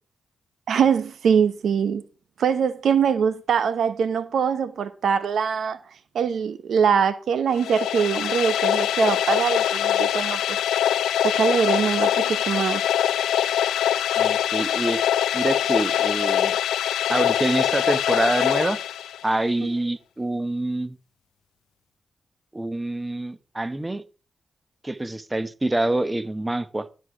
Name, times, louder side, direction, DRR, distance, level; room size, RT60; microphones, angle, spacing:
voice 1, 0.7-2.0 2.4-5.8 6.1-10.6 11.2-12.8, right 7 dB, 75° right, 0.8 m, -23 dB
sound 1, 7.5-19.4, left 11 dB, 85° left, 0.4 m, -23 dB
voice 2, 14.2-15.0 15.3-16.6 17.1-18.8 19.2-21.0 22.5-24.0 24.8-26.9, right 2 dB, 20° right, 1.0 m, -26 dB
12.0 x 4.8 x 5.9 m
supercardioid pair, 40°, 0 cm